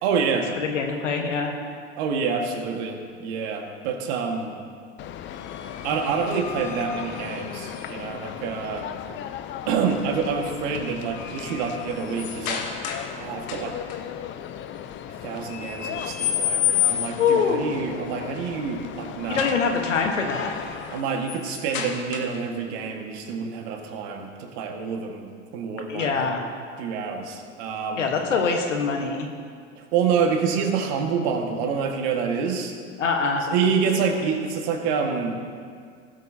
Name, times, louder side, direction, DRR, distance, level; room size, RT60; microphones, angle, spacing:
voice 1, 0.0-0.5 2.0-4.5 5.8-8.9 9.7-12.7 13.2-13.8 15.2-19.6 20.9-25.3 25.5-26.1 26.8-28.1 29.9-32.7 33.5-35.4, right 5 dB, 60° right, 3 dB, 1.8 m, -27 dB
voice 2, 0.6-1.5 17.2-17.8 19.3-20.5 25.9-26.4 28.0-29.3 33.0-33.5, left 5 dB, 90° left, 3 dB, 1.4 m, -24 dB
sound 1, 5.0-21.0, left 10 dB, 35° left, 0.6 m, -37 dB
sound 2, 5.3-8.2 10.0-10.3 10.7-13.2 13.4-14.0 15.5-17.4 19.7-22.6, left 10 dB, 50° left, 1.5 m, -31 dB
18.5 x 8.0 x 2.8 m, 2.1 s
hypercardioid pair, 90°, 36 cm